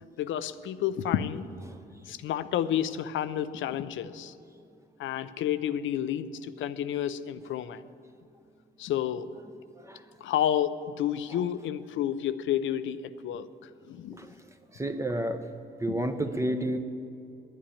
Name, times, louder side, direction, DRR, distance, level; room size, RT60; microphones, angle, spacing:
voice 1, 0.0-1.5 2.1-4.3 5.0-7.8 8.8-9.3 10.2-14.2 15.9-16.1, left 10 dB, 75° left, 14 dB, 0.6 m, -30 dB
voice 2, 14.7-15.4 15.8-16.8, right 1 dB, 15° right, 7 dB, 0.8 m, -30 dB
10.0 x 8.9 x 10.0 m, 2.6 s
cardioid pair, 90°, 20 cm